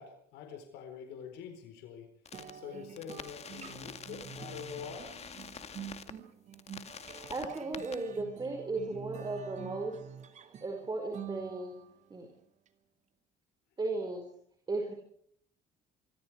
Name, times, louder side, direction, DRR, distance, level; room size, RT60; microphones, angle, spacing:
voice 1, 0.0-2.1 2.5-5.2, left 7 dB, 90° left, 6 dB, 4.3 m, -45 dB
sound 1, 2.3-2.5 3.0-6.1 6.5-8.0, left 7 dB, 40° left, 2.2 m, -46 dB
sound 2, 2.3-12.0, right 8 dB, 45° right, 2.5 m, -47 dB
voice 2, 7.1-9.9 10.6-11.7 12.1-12.3 13.8-14.3 14.7-14.9, right 3 dB, 25° right, 3 dB, 5.3 m, -36 dB
25.5 x 24.5 x 4.9 m, 0.64 s
cardioid pair, 110°, 17 cm